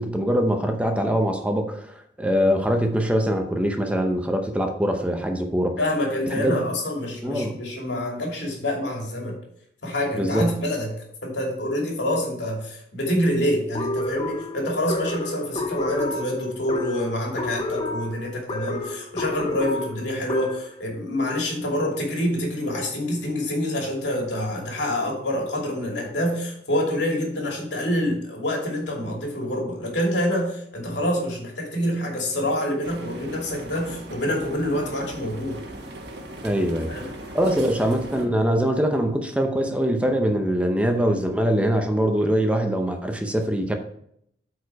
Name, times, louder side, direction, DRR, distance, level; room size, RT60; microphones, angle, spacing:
voice 1, 0.0-5.7 6.4-6.6 7.2-7.6 10.2-10.5 36.4-43.7, equal, 5° right, 4 dB, 0.7 m, -23 dB
voice 2, 5.8-9.4 9.8-10.9 11.2-35.6 36.9-37.1, left 1 dB, 80° left, 0 dB, 2.7 m, -26 dB
sound 1, 13.7-20.8, left 2 dB, 30° left, 0.9 m, -30 dB
sound 2, 32.8-38.3, right 1 dB, 65° right, 1.3 m, -39 dB
8.7 x 4.8 x 4.7 m, 0.71 s
head